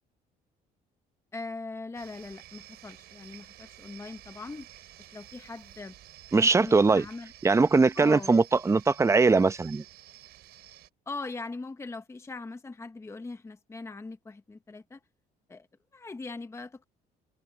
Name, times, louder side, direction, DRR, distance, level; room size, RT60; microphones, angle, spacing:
voice 1, 1.3-4.7 5.1-5.9 6.3-7.3 7.9-8.3 11.1-15.0 15.5-15.7 15.9-16.8, left 3 dB, 15° left, 0.9 m, -40 dB
sound 1, 1.9-10.9, right 14 dB, 75° right, 4.8 m, -52 dB
voice 2, 6.3-7.0 7.4-9.8, right 4 dB, 15° right, 0.7 m, -21 dB
cardioid pair, 110°, 17 cm